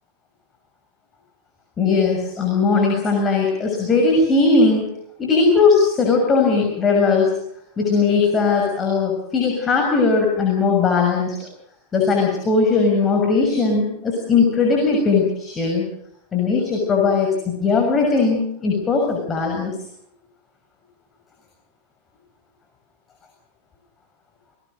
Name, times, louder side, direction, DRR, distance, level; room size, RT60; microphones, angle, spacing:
voice 1, 1.8-4.9 5.2-7.3 7.8-11.4 11.9-15.8 16.3-19.7, left 4 dB, 20° left, 1 dB, 6.6 m, -18 dB
29.5 x 19.5 x 6.7 m, 0.70 s
figure-of-eight pair, 90°, 0 cm